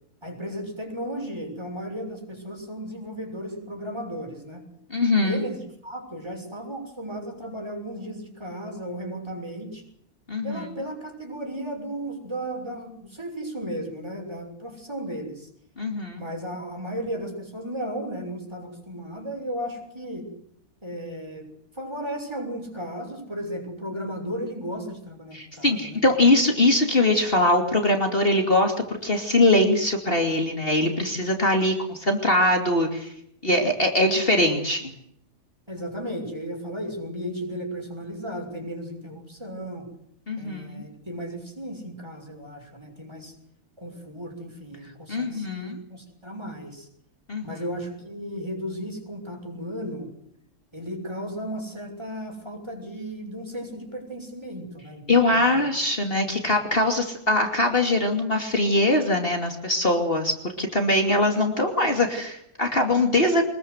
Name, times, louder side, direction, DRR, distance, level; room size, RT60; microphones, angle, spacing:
voice 1, 0.2-4.6 5.2-5.6 5.8-9.8 10.4-15.5 16.2-20.3 20.8-21.5 21.7-26.0 35.7-39.9 40.4-43.3 43.8-46.9 47.4-50.1 50.7-55.7 56.3-56.4, equal, 15° right, 3 dB, 6.6 m, -35 dB
voice 2, 4.9-5.4 10.3-10.7 15.8-16.2 25.3-33.1 33.4-34.9 40.3-40.8 45.1-45.8 47.3-47.6 55.1-63.4, left 1 dB, 40° left, 3 dB, 2.9 m, -22 dB
25.0 x 21.0 x 8.1 m, 0.72 s
omnidirectional pair, 1.6 m